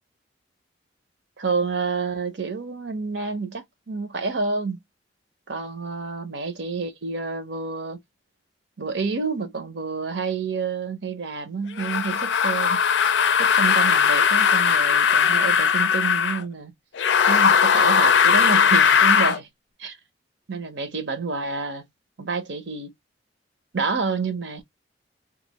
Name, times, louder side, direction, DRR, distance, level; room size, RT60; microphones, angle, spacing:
voice 1, 1.4-4.8 5.5-8.0 8.8-12.8 13.4-16.7 17.3-19.5 19.8-20.0 20.5-21.8 22.2-22.9 23.7-24.6, right 4 dB, 75° right, 0.8 m, -29 dB
sound 1, 11.8-16.4 17.0-19.4, left 7 dB, 75° left, 0.4 m, -19 dB
2.5 x 2.5 x 2.9 m
head